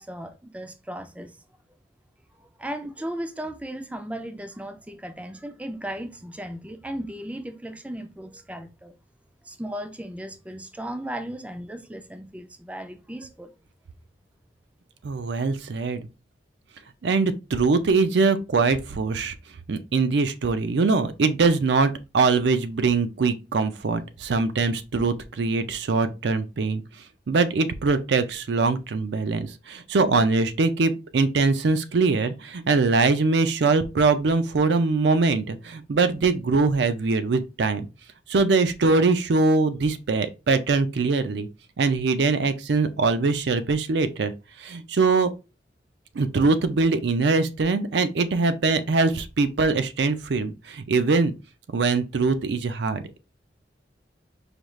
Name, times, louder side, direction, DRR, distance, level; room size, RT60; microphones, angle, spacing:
voice 1, 0.0-1.4 2.4-8.9 9.4-13.5, right 1 dB, 10° right, 0.4 m, -36 dB
voice 2, 15.0-16.1 17.0-19.3 19.7-26.8 27.3-37.9 38.3-41.5 41.8-44.3 44.6-45.3 46.1-51.3 51.7-53.2, right 4 dB, 70° right, 0.5 m, -22 dB
4.9 x 2.3 x 3.0 m
head